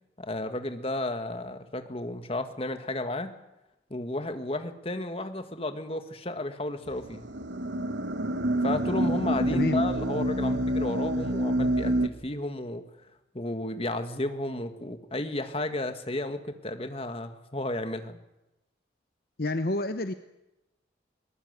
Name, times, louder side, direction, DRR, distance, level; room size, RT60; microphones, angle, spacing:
voice 1, 0.2-3.3 3.9-7.3 8.6-12.8 13.3-18.2, left 1 dB, 30° left, 8 dB, 1.8 m, -33 dB
sound 1, 6.9-12.1, right 1 dB, 65° right, 1.2 m, -27 dB
voice 2, 9.5-9.8 19.4-20.1, left 2 dB, 50° left, 9 dB, 0.9 m, -28 dB
21.5 x 19.5 x 8.1 m, 0.95 s
head